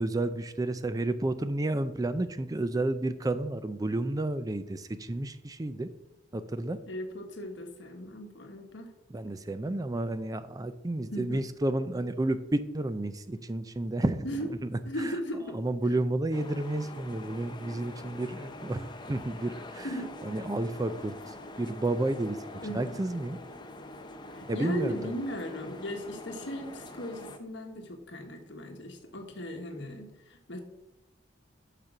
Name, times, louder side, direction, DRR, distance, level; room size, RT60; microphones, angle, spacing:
voice 1, 0.0-5.9 6.3-6.8 9.1-15.2 15.5-19.9 20.2-22.4 22.7-23.4 24.5-25.1, right 2 dB, 20° right, 12 dB, 0.4 m, -31 dB
voice 2, 6.9-8.9 11.1-11.4 14.2-14.5 14.8-15.5 19.8-20.1 22.6-23.0 24.3-30.6, equal, 65° left, 3 dB, 1.4 m, -37 dB
sound 1, 16.3-27.4, left 1 dB, 25° left, 0.6 m, -45 dB
6.5 x 5.9 x 5.9 m, 0.92 s
head